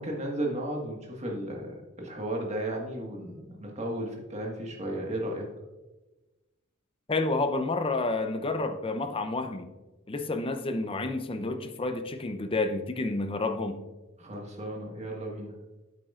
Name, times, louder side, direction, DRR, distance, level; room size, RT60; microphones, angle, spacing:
voice 1, 0.0-5.5 14.2-15.5, right 1 dB, 30° right, -1 dB, 1.6 m, -34 dB
voice 2, 7.1-9.7 10.1-13.8, left 2 dB, 25° left, 7 dB, 0.6 m, -30 dB
9.0 x 8.4 x 2.4 m, 1.1 s
head